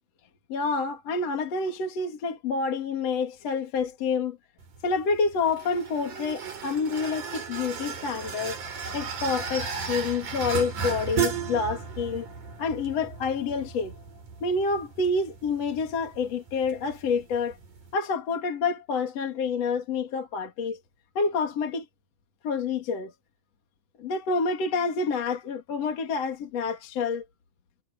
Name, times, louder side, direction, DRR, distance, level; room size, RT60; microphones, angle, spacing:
voice 1, 0.5-4.4 4.8-8.6 8.9-12.3 12.6-13.9 14.4-17.6 17.9-20.8 21.1-21.8 22.4-23.1 24.0-27.2, left 4 dB, 45° left, 3.2 m, -28 dB
sound 1, 4.6-17.9, right 6 dB, 50° right, 5.4 m, -35 dB
omnidirectional pair, 4.7 m